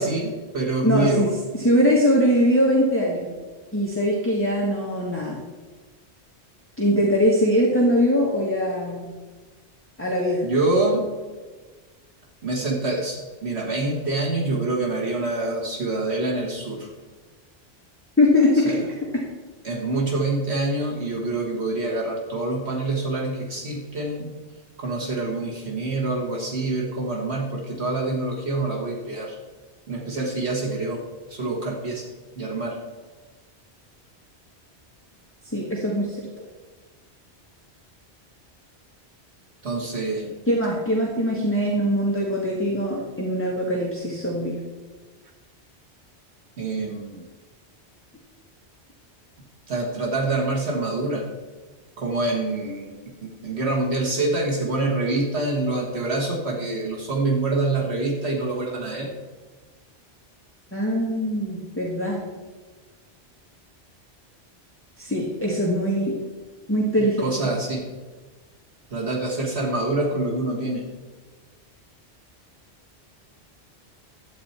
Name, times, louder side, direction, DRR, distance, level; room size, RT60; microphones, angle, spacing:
voice 1, 0.0-1.3 10.4-11.1 12.4-16.9 18.6-18.9 19.6-24.4 24.8-29.4 29.9-31.0 31.3-32.1 32.4-32.8 39.6-40.3 46.6-47.1 49.7-51.3 52.0-52.9 53.2-59.1 67.2-67.9 68.9-70.8, right 2 dB, 75° right, -1 dB, 1.8 m, -26 dB
voice 2, 0.8-3.3 3.7-5.4 6.8-9.1 10.0-10.4 18.2-18.8 19.1-19.2 35.4-36.3 40.5-44.6 60.7-62.2 65.0-66.2 66.7-67.3, equal, 10° left, -4 dB, 1.5 m, -22 dB
11.5 x 8.7 x 4.3 m, 1.3 s
omnidirectional pair, 1.1 m